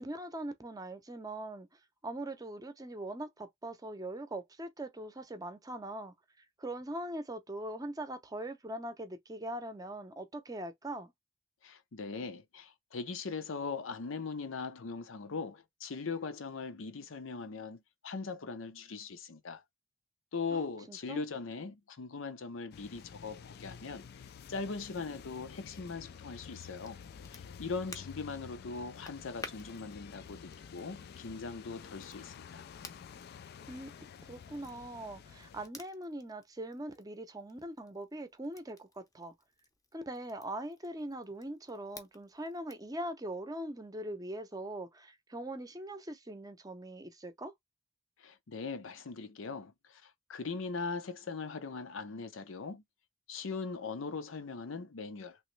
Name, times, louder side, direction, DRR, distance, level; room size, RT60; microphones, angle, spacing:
voice 1, 0.0-1.7 2.0-6.1 6.6-11.1 20.5-20.6 20.9-21.2 33.7-33.9 34.3-39.3 39.9-47.5, right 1 dB, 20° right, 0.6 m, -41 dB
voice 2, 11.6-19.6 20.3-24.0 24.5-27.0 27.3-32.6 48.2-52.8 53.3-55.4, left 4 dB, 90° left, 0.6 m, -40 dB
sound 1, 22.7-35.7, left 7 dB, 55° left, 0.3 m, -50 dB
Crackle, 26.3-42.9, left 3 dB, 20° left, 0.6 m, -55 dB
3.1 x 3.0 x 3.1 m
head